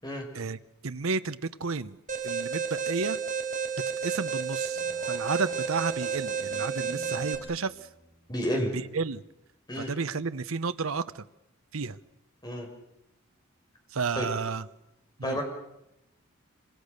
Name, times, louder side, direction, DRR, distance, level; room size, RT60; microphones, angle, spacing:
voice 1, 0.3-2.0 2.2-3.2 4.0-7.9 8.7-9.2 9.8-11.2 11.7-12.0 13.9-14.7 15.2-15.4, right 4 dB, 80° right, 12 dB, 0.8 m, -32 dB
Alarm, 2.1-7.4, right 6 dB, 40° right, 4.1 m, -31 dB
Speech synthesizer, 4.7-8.3, right 2 dB, 20° right, 7.2 m, -49 dB
voice 2, 8.3-8.7 9.7-9.9 12.4-12.7 14.2-14.3 15.2-15.4, equal, 20° left, 2 dB, 5.3 m, -30 dB
26.5 x 26.0 x 6.6 m, 0.87 s
head